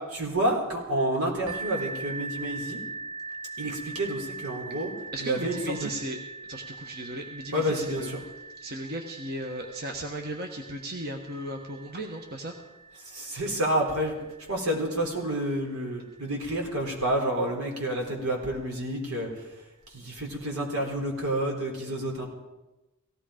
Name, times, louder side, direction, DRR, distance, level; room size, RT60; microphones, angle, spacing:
voice 1, 0.1-2.8 3.6-4.9 5.2-5.9 7.5-8.2 13.0-14.2 14.5-19.5 19.9-22.3, right 1 dB, 90° right, 0 dB, 4.1 m, -29 dB
sound 1, 1.5-17.0 17.8-17.9 18.4-18.5, right 4 dB, 30° right, 2.3 m, -42 dB
voice 2, 5.1-6.2 6.5-8.1 8.6-12.5, right 1 dB, 45° right, 3 dB, 1.3 m, -36 dB
18.0 x 16.0 x 5.1 m, 1.0 s
head